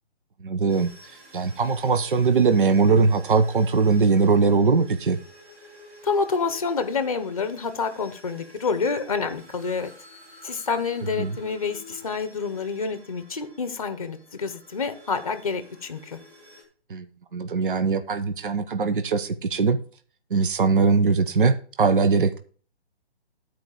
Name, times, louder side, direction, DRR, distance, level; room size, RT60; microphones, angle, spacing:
voice 1, 0.4-0.9 1.3-5.2 11.2-11.3 16.9-17.1 17.3-19.8 20.3-22.4, right 4 dB, 50° right, 9 dB, 0.9 m, -21 dB
sound 1, 0.7-16.6, left 1 dB, 10° right, 1.8 m, -50 dB
voice 2, 6.0-9.9 10.4-16.2, left 5 dB, 35° left, 11 dB, 0.8 m, -28 dB
12.5 x 4.6 x 4.8 m, 0.42 s
hypercardioid pair, 180°, 33 cm